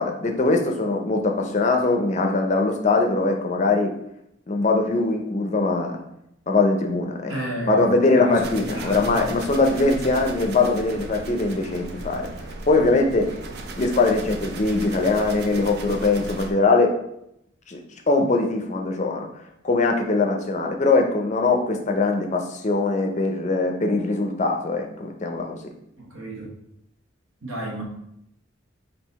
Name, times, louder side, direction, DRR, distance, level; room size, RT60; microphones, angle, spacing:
voice 1, 0.0-3.9 4.5-6.0 6.5-7.3 7.7-12.3 12.7-13.3 13.8-16.9 17.7-17.8 18.1-19.3 19.6-25.6, left 3 dB, 35° left, 3 dB, 0.5 m, -21 dB
voice 2, 7.3-7.9 8.1-9.2 9.9-10.2 26.0-26.5 27.4-27.8, equal, 80° right, -2 dB, 1.2 m, -32 dB
sound 1, 8.4-16.5, right 2 dB, 55° right, 0.4 m, -36 dB
3.7 x 2.7 x 4.1 m, 0.78 s
head